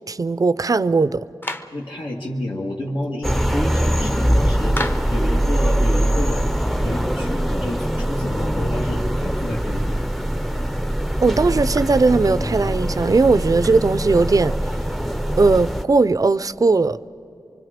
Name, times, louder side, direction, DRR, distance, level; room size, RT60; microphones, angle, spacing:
voice 1, 0.1-1.3 11.2-14.5 15.4-17.0, right 3 dB, 45° right, 0.5 m, -18 dB
Clapping, 1.4-1.8 4.8-5.2, left 1 dB, 25° left, 0.9 m, -28 dB
voice 2, 1.7-4.8 5.1-6.5 6.8-9.9, left 1 dB, 75° left, 2.0 m, -30 dB
sound 1, 3.2-15.8, equal, ahead, 0.6 m, -22 dB
25.0 x 24.5 x 5.1 m
wide cardioid pair, 90°, 8 cm